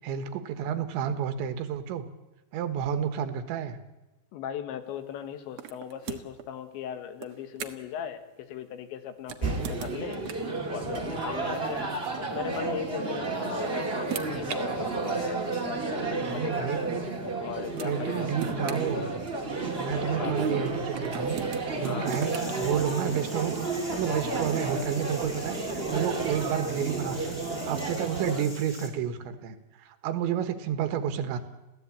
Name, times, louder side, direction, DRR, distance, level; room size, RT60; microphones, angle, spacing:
voice 1, 0.0-2.1 2.5-3.8 16.2-17.1 17.8-19.1 19.8-27.4 27.7-31.4, right 8 dB, 90° right, 9 dB, 3.7 m, -31 dB
voice 2, 4.3-10.2 10.7-16.7 17.4-19.1 19.9-20.4 21.8-22.2, left 9 dB, 85° left, 8 dB, 3.9 m, -38 dB
sound 1, 5.6-6.5 7.2-8.0 9.2-10.6 11.9-12.0 13.2-14.6 15.6-15.7 17.3-17.4 17.8-19.6 20.9-22.5, right 9 dB, 70° right, 1.6 m, -40 dB
sound 2, 9.4-28.4, right 3 dB, 30° right, 1.1 m, -32 dB
sound 3, 22.0-28.9, left 2 dB, 20° left, 3.7 m, -44 dB
27.5 x 16.0 x 8.6 m, 1.0 s
omnidirectional pair, 5.1 m